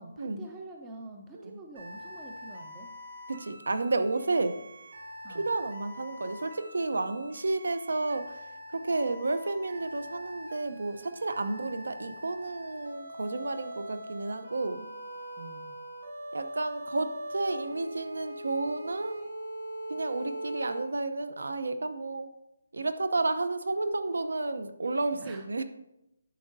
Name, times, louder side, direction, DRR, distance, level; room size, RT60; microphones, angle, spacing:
voice 1, 0.0-2.9 5.2-5.5 15.4-15.8 25.1-25.5, right 2 dB, 10° right, 2 dB, 0.4 m, -46 dB
sound 1, 1.8-20.8, equal, 70° right, 2.8 m, -42 dB
voice 2, 3.3-4.6 5.3-8.5 8.7-14.9 16.3-19.2 19.9-22.3 22.7-25.6, right 2 dB, 90° right, 10 dB, 0.7 m, -31 dB
9.9 x 6.2 x 2.7 m, 0.87 s
hypercardioid pair, 180°, 0 cm